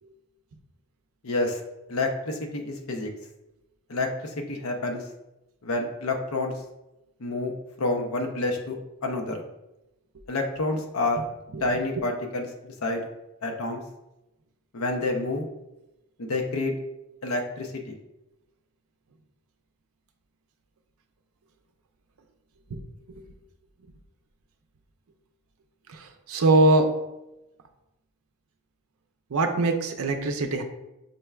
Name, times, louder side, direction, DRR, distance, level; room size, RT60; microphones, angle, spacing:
voice 1, 1.2-1.6 1.9-3.1 3.9-4.1 4.4-5.0 5.6-6.6 7.2-7.5 7.8-8.8 9.0-9.4 10.3-11.2 11.6-13.0 13.4-13.8 14.7-15.5 16.2-16.7 17.2-18.0, left 2 dB, 75° left, 2 dB, 0.6 m, -28 dB
voice 2, 25.9-26.9 29.3-30.6, right 2 dB, 80° right, 5 dB, 0.5 m, -22 dB
5.2 x 3.2 x 2.3 m, 0.95 s
head